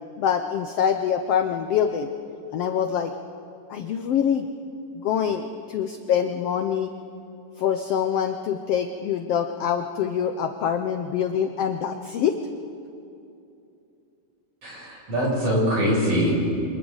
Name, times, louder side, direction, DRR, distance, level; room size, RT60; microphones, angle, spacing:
voice 1, 0.2-2.1 2.5-3.1 3.7-4.4 4.9-6.9 7.6-12.4, left 8 dB, 70° left, 6 dB, 1.5 m, -25 dB
voice 2, 14.6-16.3, equal, 50° right, -5 dB, 7.7 m, -23 dB
28.5 x 25.5 x 4.0 m, 2.7 s
omnidirectional pair, 3.5 m